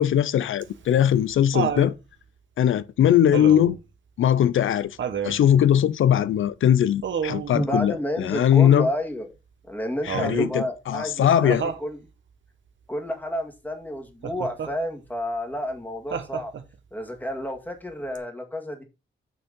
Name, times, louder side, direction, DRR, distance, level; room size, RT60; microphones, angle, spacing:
voice 1, 0.0-1.9 2.6-3.8 4.2-5.0 5.2-8.9 10.0-11.6, left 10 dB, 85° left, 0.5 m, -20 dB
Laughter, 0.6-1.9 3.3-3.8 5.0-5.4 7.0-7.5 10.1-10.6 11.5-11.9 14.2-14.7 16.1-16.8 18.1-18.2, right 7 dB, 70° right, 1.2 m, -30 dB
voice 2, 7.5-9.3 9.7-12.0 12.9-16.5 16.9-18.8, equal, 10° left, 2.0 m, -30 dB
7.0 x 6.1 x 5.3 m
wide cardioid pair, 150°, 20 cm